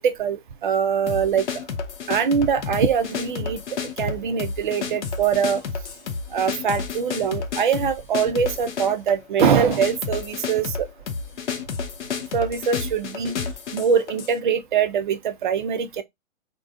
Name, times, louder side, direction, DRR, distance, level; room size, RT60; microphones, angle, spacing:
voice 1, 0.0-1.4 2.1-5.6 6.3-10.9 12.3-13.4 13.7-16.0, right 7 dB, 40° right, 0.4 m, -23 dB
sound 1, 1.1-14.4, left 5 dB, 60° left, 0.7 m, -31 dB
3.3 x 2.1 x 2.3 m
figure-of-eight pair, 120°, 39 cm